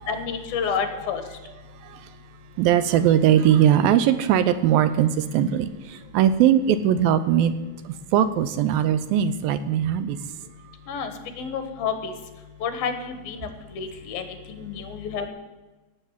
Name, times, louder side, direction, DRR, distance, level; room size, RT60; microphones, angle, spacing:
voice 1, 0.1-1.2 10.9-12.1 12.6-13.5 13.8-15.3, left 6 dB, 70° left, 8 dB, 3.2 m, -29 dB
voice 2, 2.6-7.5 7.9-10.2, right 10 dB, 80° right, 12 dB, 2.4 m, -20 dB
17.5 x 7.9 x 7.4 m, 1.2 s
omnidirectional pair, 4.4 m